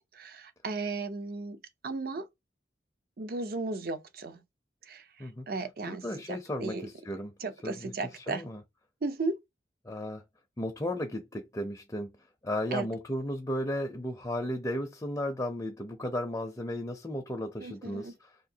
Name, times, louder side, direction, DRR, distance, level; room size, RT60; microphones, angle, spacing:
voice 1, 0.0-2.3 3.2-4.4 4.8-6.9 7.4-8.5 9.0-9.4 12.7-12.9 17.6-18.1, right 3 dB, 55° right, 0.5 m, -35 dB
voice 2, 5.9-7.3 7.6-7.9 8.3-8.6 9.8-10.2 10.6-12.1 12.4-18.1, left 1 dB, 15° left, 0.5 m, -34 dB
3.6 x 2.6 x 2.7 m
head